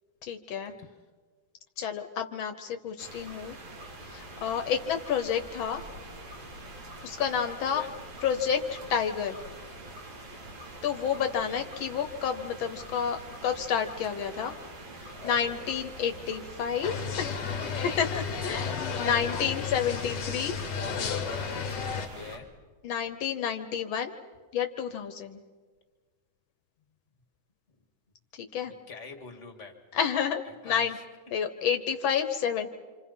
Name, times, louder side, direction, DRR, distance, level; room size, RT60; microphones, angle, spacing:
voice 1, 0.2-0.7 1.8-3.6 4.0-5.8 7.0-7.8 8.2-9.4 10.8-14.5 15.0-17.4 17.8-20.6 22.8-24.1 24.5-25.4 28.5-28.7 29.9-31.0 31.3-32.7, left 7 dB, 80° left, 7 dB, 1.7 m, -30 dB
sound 1, 3.0-22.4, right 1 dB, 85° right, 3.6 m, -45 dB
voice 2, 7.5-7.9 11.1-11.7 15.0-16.3 18.0-18.2 21.9-22.5 28.7-29.7 30.5-31.0, left 4 dB, 35° left, 4 dB, 2.4 m, -46 dB
sound 2, 16.8-22.1, left 6 dB, 60° left, 1.8 m, -33 dB
27.0 x 26.5 x 5.5 m, 1.5 s
omnidirectional pair, 2.2 m